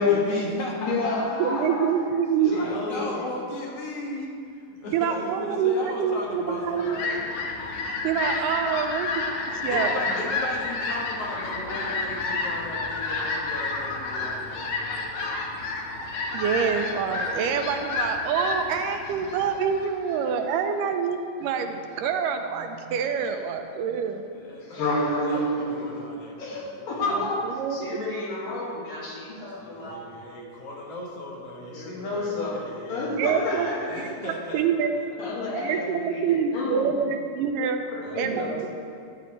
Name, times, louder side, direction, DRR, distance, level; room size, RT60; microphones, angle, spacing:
voice 1, 0.0-1.7 2.4-4.3 4.8-7.2 9.6-15.4 24.3-24.9 25.3-27.0 29.6-34.6 34.9-35.2 38.0-38.7, left 1 dB, 55° left, -2 dB, 2.0 m, -36 dB
voice 2, 0.8-1.9 2.5-3.1 24.6-26.0 26.4-30.1 31.7-34.1 35.2-36.9 37.9-38.4, left 2 dB, 90° left, -4 dB, 3.5 m, -29 dB
voice 3, 1.4-2.6 4.9-7.0 7.8-10.0 16.0-24.2 27.1-28.1 33.2-34.9 35.5-37.8 38.2-38.7, right 7 dB, 85° right, 6 dB, 2.2 m, -26 dB
Fowl, 6.4-20.3, left 3 dB, 75° left, 1.2 m, -30 dB
13.0 x 9.3 x 3.2 m, 2.4 s
omnidirectional pair, 3.9 m